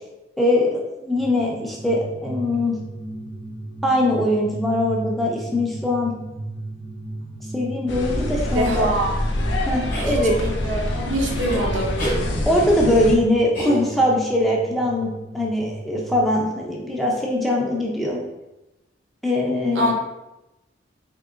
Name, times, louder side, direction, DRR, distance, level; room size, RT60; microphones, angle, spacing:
voice 1, 0.4-2.7 3.8-6.1 7.5-8.9 9.7-10.4 12.4-15.1 15.3-18.2 19.2-19.9, left 1 dB, ahead, -3 dB, 0.4 m, -21 dB
sound 1, 1.1-16.4, right 2 dB, 45° right, 0.6 m, -35 dB
sound 2, 7.9-13.2, left 1 dB, 75° left, 0.5 m, -26 dB
voice 2, 8.5-9.2 10.1-12.0 19.8-19.9, right 1 dB, 80° right, 0 dB, 0.7 m, -24 dB
sound 3, 9.9-10.2 11.5-11.6 12.0-12.2 13.5-14.2, equal, 45° left, 0.8 m, -28 dB
3.7 x 2.8 x 2.4 m, 0.98 s
head